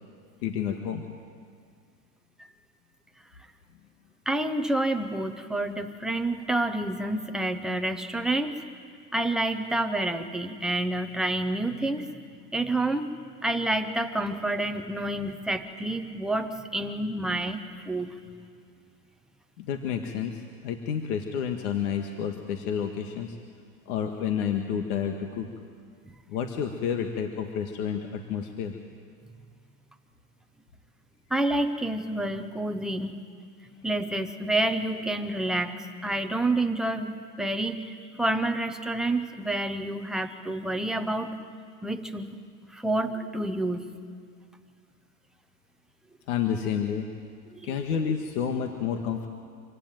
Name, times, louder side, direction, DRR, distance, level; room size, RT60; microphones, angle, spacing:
voice 1, 0.4-1.0 19.6-23.4 23.9-25.5 26.3-28.8 46.3-47.1 47.6-49.3, left 7 dB, 65° left, 5 dB, 1.8 m, -30 dB
voice 2, 4.3-8.5 9.1-12.0 12.5-13.1 13.4-18.1 31.3-33.2 33.8-41.3 41.8-42.4 42.7-43.9 47.5-47.7, right 1 dB, ahead, 5 dB, 0.5 m, -28 dB
25.5 x 15.5 x 9.2 m, 2.1 s
supercardioid pair, 145°, 49 cm